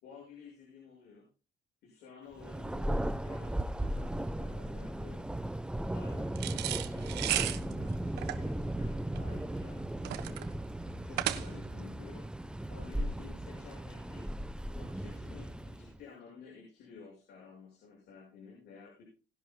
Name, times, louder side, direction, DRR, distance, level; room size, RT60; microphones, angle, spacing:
voice 1, 0.0-1.3 1.8-5.3 5.9-10.5 11.0-12.3 12.7-14.3 14.7-19.0, left 5 dB, 75° left, -1 dB, 6.2 m, -53 dB
Thunder, 2.4-16.0, right 1 dB, 5° right, 0.8 m, -36 dB
sound 1, 6.4-11.8, right 14 dB, 85° right, 1.4 m, -35 dB
19.5 x 11.5 x 2.2 m, 0.33 s
cardioid pair, 110°, 17 cm